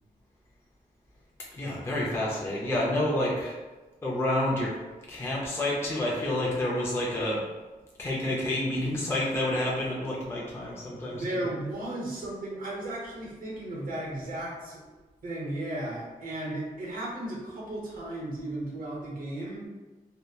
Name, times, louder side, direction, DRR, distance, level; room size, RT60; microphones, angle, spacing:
voice 1, 1.5-3.6 4.0-4.8 5.1-7.4 8.0-11.5, left 1 dB, 15° left, -5 dB, 0.5 m, -29 dB
voice 2, 11.1-14.9 15.2-19.7, right 1 dB, 70° right, -5 dB, 0.8 m, -35 dB
2.8 x 2.1 x 2.3 m, 1.2 s
wide cardioid pair, 125°, 15 cm